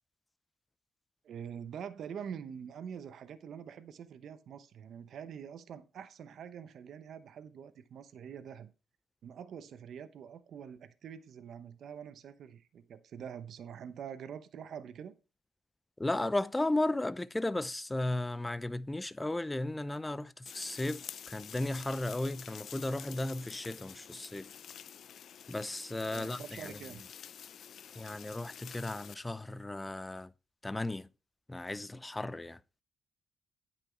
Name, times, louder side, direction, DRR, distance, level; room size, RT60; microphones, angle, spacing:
voice 1, 1.2-8.7 9.2-15.1 26.1-27.0, right 8 dB, 65° right, 0.8 m, -45 dB
voice 2, 16.0-24.5 25.5-26.8 28.0-30.3 30.6-31.1 31.5-32.6, left 2 dB, 15° left, 0.5 m, -35 dB
sound 1, 20.5-29.2, left 8 dB, 60° left, 0.5 m, -49 dB
9.1 x 6.0 x 4.5 m
cardioid pair, 90°, 0 cm